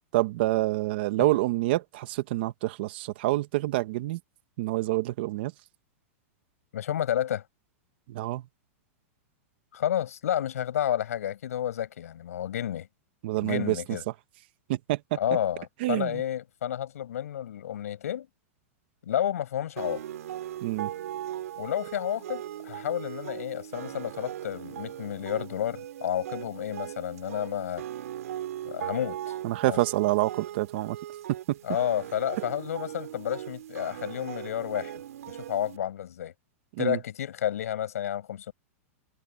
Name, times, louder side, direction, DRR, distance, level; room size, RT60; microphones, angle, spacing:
voice 1, 0.1-4.2 4.6-5.5 8.1-8.4 13.2-13.7 14.7-15.0 15.8-16.1 20.6-20.9 29.4-31.0 36.8-37.0, right 18 dB, 45° right, 1.3 m, -27 dB
voice 2, 6.7-7.4 9.7-12.9 13.4-14.0 15.1-18.3 19.0-20.0 21.6-27.8 28.6-29.2 29.6-29.8 31.6-35.0 35.3-36.3 36.8-38.5, left 10 dB, 90° left, 6.8 m, -31 dB
sound 1, 19.8-35.8, right 12 dB, 80° right, 2.6 m, -39 dB
supercardioid pair, 170°, 8 cm